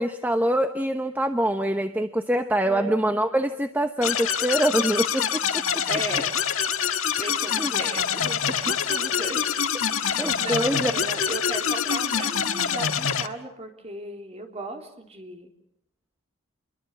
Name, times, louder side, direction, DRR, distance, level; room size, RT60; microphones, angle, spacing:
voice 1, 0.0-5.8 7.6-7.7 10.2-11.0, right 1 dB, 10° right, 7 dB, 0.9 m, -25 dB
voice 2, 2.6-3.2 5.3-5.4 5.9-6.4 7.2-9.5 10.0-15.5, right 1 dB, 30° right, 3 dB, 3.5 m, -36 dB
sound 1, 4.0-13.3, left 7 dB, 75° left, 1.6 m, -25 dB
28.0 x 23.0 x 7.3 m, 0.76 s
head